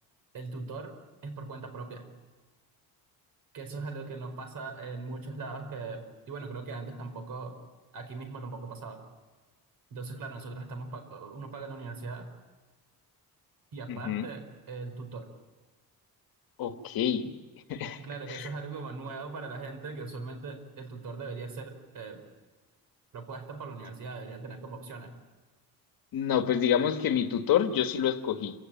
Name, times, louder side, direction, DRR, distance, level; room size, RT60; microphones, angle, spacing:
voice 1, 0.3-0.9 1.2-2.0 3.5-7.6 7.9-9.0 9.9-12.3 13.7-15.3 17.2-17.3 18.0-22.2 23.1-25.1, right 3 dB, 60° right, 7 dB, 4.8 m, -40 dB
voice 2, 13.9-14.3 16.6-17.2 17.7-18.0 18.3-18.5 26.1-28.5, left 9 dB, 70° left, 7 dB, 1.7 m, -27 dB
27.5 x 17.0 x 9.0 m, 1.3 s
cardioid pair, 155°, 37 cm